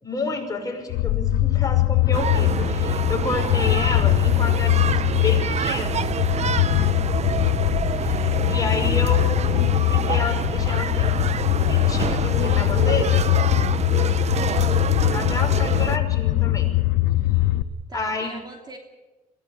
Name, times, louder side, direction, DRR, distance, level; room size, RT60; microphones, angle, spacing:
voice 1, 0.0-6.1 7.9-11.2 11.6-13.2 15.1-16.7 17.9-18.3, left 3 dB, 20° left, 2 dB, 5.7 m, -30 dB
sound 1, 0.9-17.6, left 16 dB, 90° left, 1.0 m, -21 dB
sound 2, 2.1-16.0, right 7 dB, 40° right, 0.9 m, -27 dB
voice 2, 14.5-14.9 17.9-18.8, right 1 dB, 25° right, 3 dB, 3.0 m, -40 dB
23.0 x 16.5 x 8.7 m, 1.1 s
cardioid pair, 110°, 17 cm